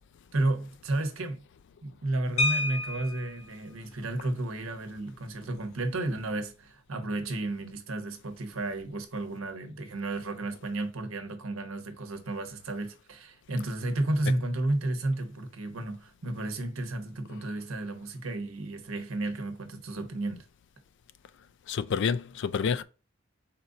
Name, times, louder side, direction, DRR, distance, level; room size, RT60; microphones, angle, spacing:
voice 1, 0.3-1.4 1.8-20.4, right 2 dB, 85° right, 0.9 m, -32 dB
sound 1, 2.4-3.5 4.9-5.0 5.4-5.6 5.9-6.2, left 2 dB, 80° left, 1.0 m, -30 dB
voice 2, 21.7-22.8, left 6 dB, 60° left, 0.4 m, -28 dB
4.3 x 2.6 x 3.8 m
head